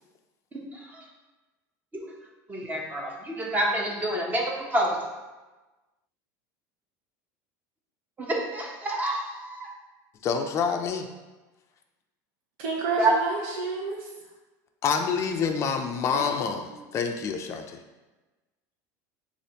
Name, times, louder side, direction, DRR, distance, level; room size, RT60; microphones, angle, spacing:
voice 1, 0.7-1.0 1.9-2.0 2.5-5.1 8.2-9.7 13.0-13.1, right 1 dB, 20° right, -1 dB, 0.8 m, -28 dB
voice 2, 10.2-11.1 14.8-16.6 16.9-17.8, left 6 dB, 35° left, 5 dB, 0.4 m, -27 dB
voice 3, 12.6-14.1 16.1-16.3 16.7-16.8, right 3 dB, 70° right, -2 dB, 0.8 m, -30 dB
6.5 x 2.5 x 2.8 m, 1.2 s
supercardioid pair, 135°, 9 cm